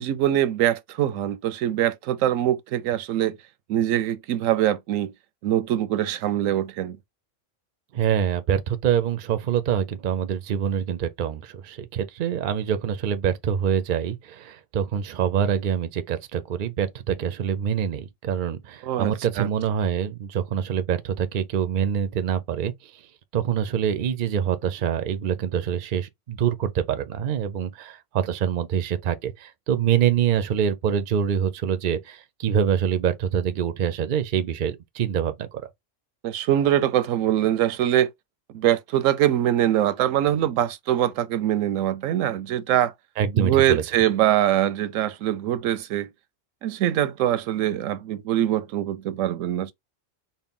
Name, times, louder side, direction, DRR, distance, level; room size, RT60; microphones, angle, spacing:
voice 1, 0.0-3.4 3.7-5.1 5.4-7.0 18.8-19.5 36.2-38.1 38.5-42.9 43.3-46.1 46.6-49.7, right 12 dB, 85° right, 1.0 m, -23 dB
voice 2, 7.9-22.7 23.3-35.6 43.2-43.8, right 8 dB, 55° right, 0.6 m, -25 dB
4.2 x 2.2 x 3.6 m
omnidirectional pair, 1.3 m